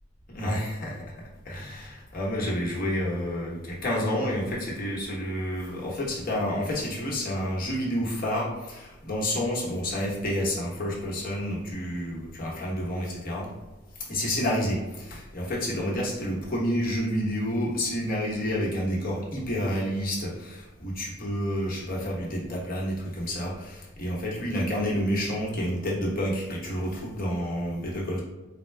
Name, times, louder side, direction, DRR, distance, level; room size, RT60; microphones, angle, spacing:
voice 1, 0.3-1.0 1.4-13.5 14.1-28.2, equal, 45° left, -4 dB, 1.1 m, -29 dB
4.4 x 2.2 x 3.2 m, 1.1 s
head